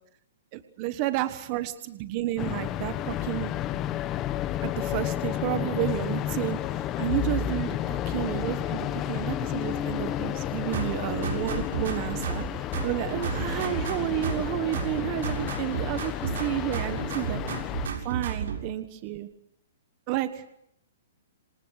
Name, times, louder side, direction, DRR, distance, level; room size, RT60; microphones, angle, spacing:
voice 1, 0.5-3.5 4.6-6.6 7.0-17.4 18.0-19.3 20.1-20.4, right 15 dB, 30° right, 11 dB, 1.3 m, -31 dB
sound 1, 2.4-17.9, left 12 dB, 20° left, 1.0 m, -32 dB
Bowed string instrument, 7.1-12.2, left 4 dB, 40° left, 5.4 m, -38 dB
sound 2, 10.7-12.5 12.7-14.5 14.7-16.5 16.7-18.6, right 7 dB, 65° right, 6.8 m, -32 dB
27.5 x 27.0 x 6.5 m, 0.75 s
hypercardioid pair, 170°, 0 cm